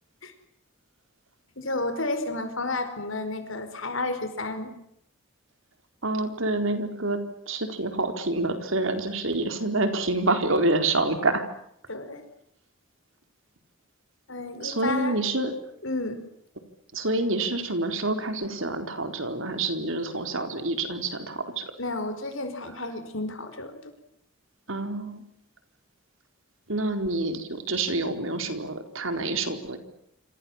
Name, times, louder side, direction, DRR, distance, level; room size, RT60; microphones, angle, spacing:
voice 1, 1.6-4.7 11.9-12.2 14.3-15.2 15.8-16.2 21.8-23.9, left 2 dB, 65° left, 9 dB, 5.1 m, -31 dB
voice 2, 6.0-7.2 7.5-11.4 14.6-15.5 16.9-21.7 24.7-25.2 26.7-29.8, right 2 dB, 65° right, 8 dB, 4.3 m, -27 dB
28.0 x 27.0 x 7.4 m, 0.74 s
head